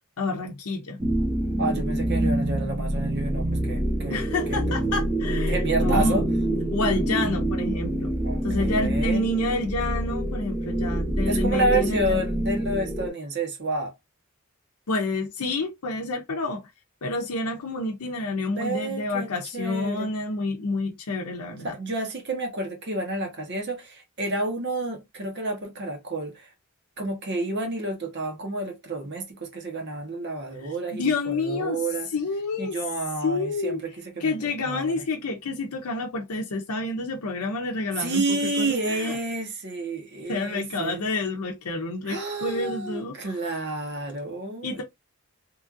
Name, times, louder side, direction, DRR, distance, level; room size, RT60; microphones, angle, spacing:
voice 1, 0.2-1.0 4.1-6.2 6.7-8.1 8.4-12.2 14.9-16.6 17.0-21.7 30.9-31.8 32.1-32.8 33.2-33.8 34.2-39.1 40.3-43.1 44.6-44.8, left 2 dB, 90° left, 0.6 m, -29 dB
sound 1, 1.0-13.1, right 1 dB, 10° right, 0.5 m, -26 dB
voice 2, 1.6-4.8 5.5-6.3 8.2-9.3 11.3-13.9 18.6-20.1 21.6-26.5 27.0-32.1 32.6-35.0 38.0-41.0 42.1-44.8, right 2 dB, 50° right, 1.0 m, -30 dB
3.1 x 2.5 x 2.3 m
head